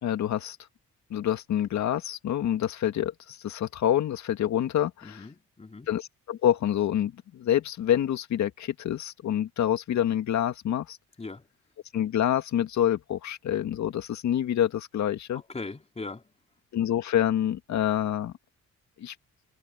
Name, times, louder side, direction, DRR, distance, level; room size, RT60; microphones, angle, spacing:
voice 1, 0.0-0.6 1.1-5.2 5.9-11.0 11.9-15.4 16.7-18.3 19.0-19.1, left 10 dB, 70° left, 2.1 m, -27 dB
voice 2, 5.0-5.9 11.2-11.5 15.3-16.3, left 3 dB, 20° left, 3.6 m, -40 dB
cardioid pair, 90°, 30 cm